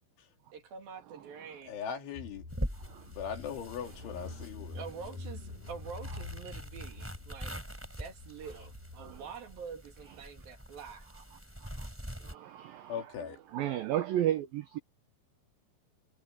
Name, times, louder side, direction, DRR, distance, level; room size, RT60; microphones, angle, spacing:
voice 1, 0.5-1.8 4.7-11.1, right 6 dB, 55° right, 3.9 m, -46 dB
voice 2, 1.7-2.5 3.1-4.9 12.9-13.4, left 8 dB, 80° left, 5.5 m, -39 dB
Car / Engine, 2.1-9.2, left 2 dB, 45° left, 6.5 m, -47 dB
sound 1, 2.5-12.4, equal, 5° right, 4.6 m, -44 dB
voice 3, 12.2-12.9 13.5-14.8, right 12 dB, 80° right, 2.1 m, -33 dB
omnidirectional pair, 5.4 m